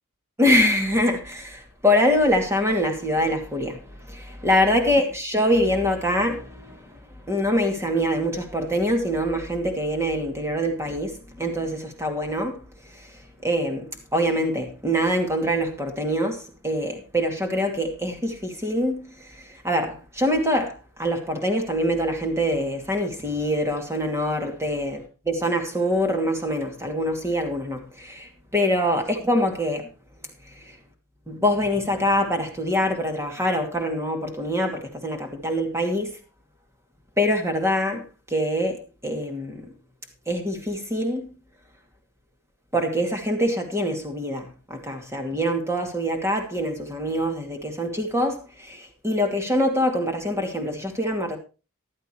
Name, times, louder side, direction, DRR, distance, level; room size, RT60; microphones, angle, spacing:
voice 1, 0.4-25.0 25.3-29.9 30.5-30.8 31.3-36.1 37.2-39.7 40.3-41.3 42.7-51.4, equal, 15° right, 2.6 m, -24 dB
14.5 x 12.0 x 3.1 m
head